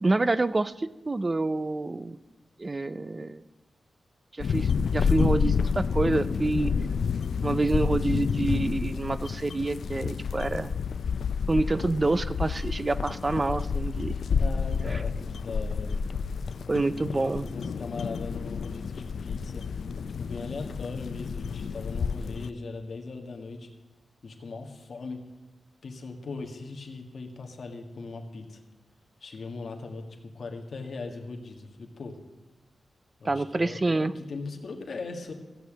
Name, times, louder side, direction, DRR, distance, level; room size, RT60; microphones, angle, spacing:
voice 1, 0.0-2.2 2.6-3.4 4.3-6.7 7.4-10.7 11.5-14.2 14.9-15.0 16.7-17.5 33.2-34.1, right 2 dB, 25° right, 15 dB, 0.4 m, -27 dB
sound 1, 4.4-22.5, left 6 dB, 70° left, 0.3 m, -29 dB
voice 2, 14.3-16.0 16.9-19.7 20.2-23.7 24.2-25.2 25.8-28.6 29.2-32.2 33.2-35.3, left 3 dB, 55° left, 3 dB, 1.7 m, -39 dB
15.5 x 7.0 x 7.4 m, 1.2 s
wide cardioid pair, 170°, 0 cm